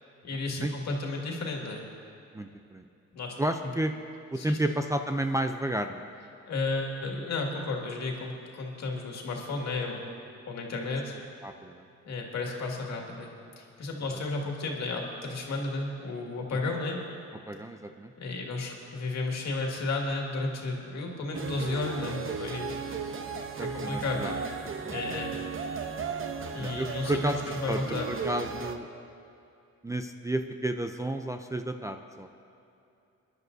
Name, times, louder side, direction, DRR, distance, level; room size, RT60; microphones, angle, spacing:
voice 1, 0.2-1.8 3.1-3.4 3.6-3.7 4.4-4.8 6.5-10.0 10.5-11.1 12.1-13.3 13.6-17.0 18.2-22.7 23.6-24.4 24.9-25.3 26.5-27.3 27.6-28.1, left 3 dB, 60° left, 0 dB, 2.2 m, -33 dB
voice 2, 2.3-2.8 3.4-3.9 4.3-6.1 11.4-11.8 14.1-14.2 16.5-16.7 17.5-18.1 23.6-24.3 24.8-25.2 26.6-27.4 27.7-27.8 28.1-28.9 29.8-32.4, right 1 dB, 10° right, 4 dB, 0.5 m, -32 dB
sound 1, 21.3-28.8, right 5 dB, 45° right, 0.9 m, -35 dB
24.5 x 10.5 x 2.7 m, 2.7 s
cardioid pair, 90°, 30 cm